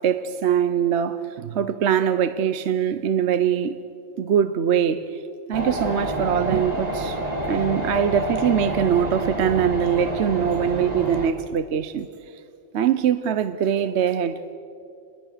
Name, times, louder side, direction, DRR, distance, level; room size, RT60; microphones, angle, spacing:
voice 1, 0.0-3.8 4.2-5.2 5.5-7.2 7.4-12.1 12.7-14.4, right 8 dB, 65° right, 1.0 m, -22 dB
sound 1, 5.5-11.3, right 1 dB, 30° right, 2.4 m, -28 dB
29.5 x 20.5 x 6.7 m
omnidirectional pair, 1.3 m